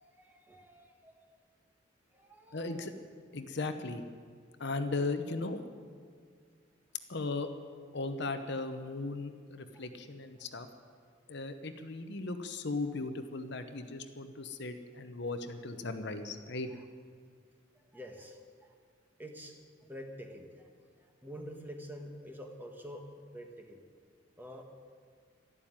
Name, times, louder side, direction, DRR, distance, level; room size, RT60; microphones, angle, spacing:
voice 1, 0.1-1.4 2.1-2.9 9.7-9.9 16.7-16.8 17.9-18.4 19.2-19.6 19.9-20.5 21.2-23.8 24.4-24.6, equal, 10° right, 3 dB, 1.5 m, -47 dB
voice 2, 2.5-2.9 3.3-4.0 4.6-5.6 7.1-7.5 7.9-10.7 11.3-16.7, left 3 dB, 60° left, 8 dB, 1.0 m, -37 dB
12.5 x 12.0 x 8.9 m, 2.1 s
head